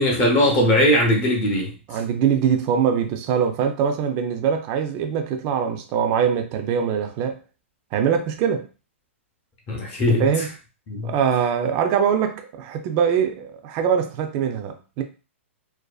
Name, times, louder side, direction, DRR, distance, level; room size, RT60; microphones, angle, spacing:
voice 1, 0.0-1.7 9.7-10.3 10.9-11.1, left 1 dB, 25° left, 0.7 m, -19 dB
voice 2, 1.9-7.4 7.9-8.7 10.2-10.5 11.0-15.0, right 7 dB, 30° right, 0.4 m, -22 dB
2.5 x 2.3 x 2.3 m
hypercardioid pair, 150°, 7 cm